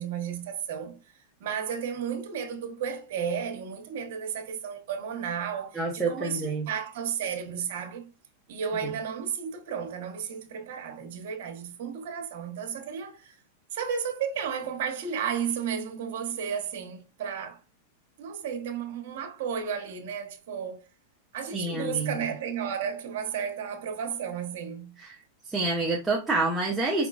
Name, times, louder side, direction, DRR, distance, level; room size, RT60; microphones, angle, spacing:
voice 1, 0.0-8.1 8.5-13.4 13.7-17.6 18.2-20.9 21.3-25.0, right 7 dB, 65° right, 1.0 m, -33 dB
voice 2, 5.7-6.7 21.5-22.1 25.0-25.1 25.5-27.1, right 3 dB, 10° right, 0.6 m, -27 dB
4.9 x 3.5 x 2.4 m
supercardioid pair, 145°, 0 cm